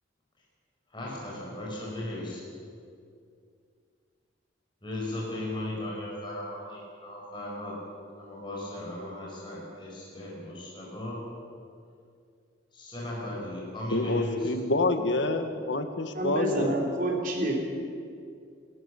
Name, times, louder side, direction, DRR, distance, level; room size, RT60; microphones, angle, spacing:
voice 1, 0.9-2.5 4.8-7.8 8.1-11.2 12.7-14.5, left 1 dB, 25° left, -4 dB, 5.3 m, -36 dB
voice 2, 13.9-16.7, left 2 dB, 70° left, 8 dB, 1.6 m, -27 dB
voice 3, 16.1-17.6, right 1 dB, 45° right, 0 dB, 3.8 m, -28 dB
30.0 x 13.0 x 7.2 m, 2.4 s
head